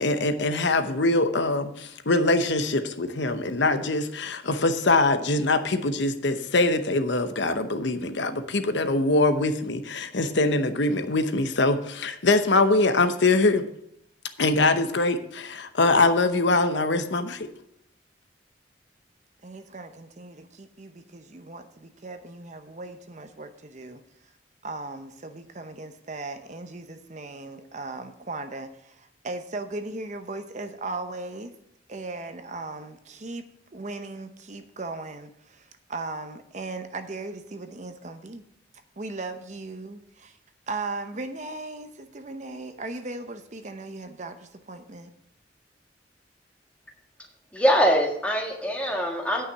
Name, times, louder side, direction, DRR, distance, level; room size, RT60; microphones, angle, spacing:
voice 1, 0.0-13.6 14.4-17.5, left 2 dB, 75° left, 8 dB, 0.9 m, -23 dB
voice 2, 19.4-24.0 24.6-31.5 31.9-38.4 39.0-40.3 40.7-45.1, right 2 dB, 40° right, 8 dB, 0.7 m, -37 dB
voice 3, 47.5-49.4, equal, 5° left, 1 dB, 1.6 m, -23 dB
9.6 x 5.8 x 7.0 m, 0.74 s
head